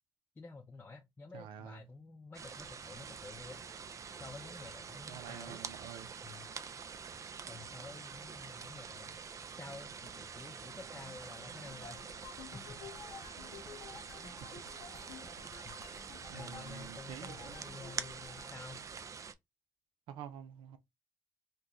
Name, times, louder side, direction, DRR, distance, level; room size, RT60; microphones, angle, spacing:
voice 1, 0.4-3.6 4.2-5.6 6.2-6.5 7.5-9.1 9.5-12.8 15.6-15.8 16.3-18.9, left 3 dB, 25° left, 0.5 m, -51 dB
voice 2, 1.3-1.9 5.1-6.1 16.3-17.6 20.1-20.8, right 9 dB, 90° right, 0.6 m, -48 dB
sound 1, 2.3-19.3, right 6 dB, 40° right, 0.4 m, -46 dB
sound 2, 11.7-18.5, left 6 dB, 65° left, 0.6 m, -52 dB
2.9 x 2.2 x 3.7 m
cardioid pair, 90°, 8 cm